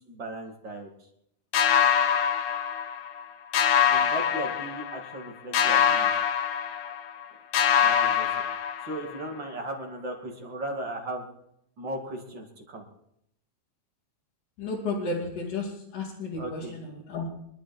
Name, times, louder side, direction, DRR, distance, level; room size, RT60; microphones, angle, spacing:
voice 1, 0.1-0.9 3.9-6.1 7.8-8.3 8.8-11.3 11.8-12.8 16.4-16.8, right 1 dB, 40° right, 2 dB, 2.9 m, -36 dB
sound 1, 1.5-3.2 3.5-5.2 5.5-7.3 7.5-9.2, left 8 dB, 70° left, 2.1 m, -24 dB
voice 2, 14.6-17.3, left 3 dB, 85° left, -6 dB, 4.3 m, -33 dB
25.0 x 12.0 x 4.4 m, 0.76 s
omnidirectional pair, 3.5 m